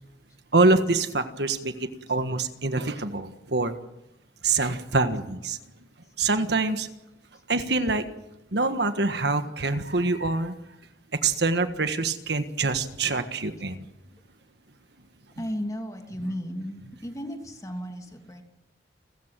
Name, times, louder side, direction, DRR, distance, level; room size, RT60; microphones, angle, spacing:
voice 1, 0.5-3.7 4.4-5.6 6.2-6.9 7.5-8.1 8.5-10.5 11.2-13.9, right 3 dB, 65° right, 9 dB, 1.6 m, -25 dB
voice 2, 15.4-18.4, equal, 20° left, 4 dB, 2.9 m, -34 dB
30.0 x 14.5 x 7.6 m, 0.93 s
head